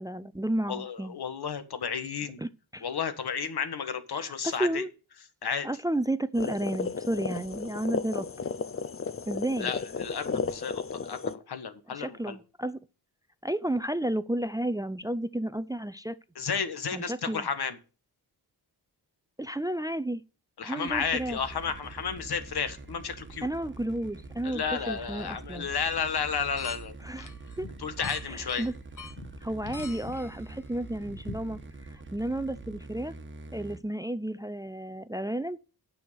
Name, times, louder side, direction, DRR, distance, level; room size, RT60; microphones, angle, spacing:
voice 1, 0.0-1.1 2.4-2.8 4.1-4.9 5.6-8.3 9.3-9.7 11.9-12.8 13.4-16.2 16.9-17.5 19.4-20.2 20.6-21.4 23.4-25.7 27.0-27.3 27.6-27.7 28.2-28.7 29.4-31.6 31.9-33.1 33.5-35.6, right 1 dB, 10° right, 0.5 m, -32 dB
voice 2, 0.7-2.4 2.8-4.9 5.4-5.7 9.6-12.4 16.3-17.8 20.6-23.5 24.4-27.0 27.8-28.7, left 6 dB, 75° left, 1.5 m, -32 dB
sound 1, 6.3-11.4, left 5 dB, 35° left, 0.6 m, -33 dB
sound 2, 20.9-33.8, right 3 dB, 30° right, 1.4 m, -45 dB
sound 3, 26.1-26.8 27.2-31.6, left 4 dB, 50° left, 1.7 m, -43 dB
9.3 x 6.3 x 6.7 m
wide cardioid pair, 80°, 39 cm